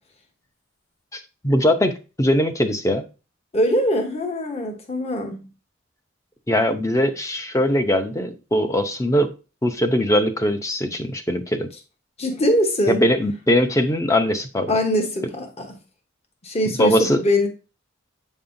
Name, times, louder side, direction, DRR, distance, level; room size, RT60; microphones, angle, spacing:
voice 1, 1.1-1.9 2.2-3.0 6.5-9.3 9.6-11.7 12.9-14.7 16.8-17.2, equal, 15° left, 0.6 m, -21 dB
voice 2, 3.5-5.5 12.2-13.1 14.7-15.8 16.4-17.5, equal, 30° left, 1.0 m, -22 dB
7.7 x 5.4 x 2.6 m
head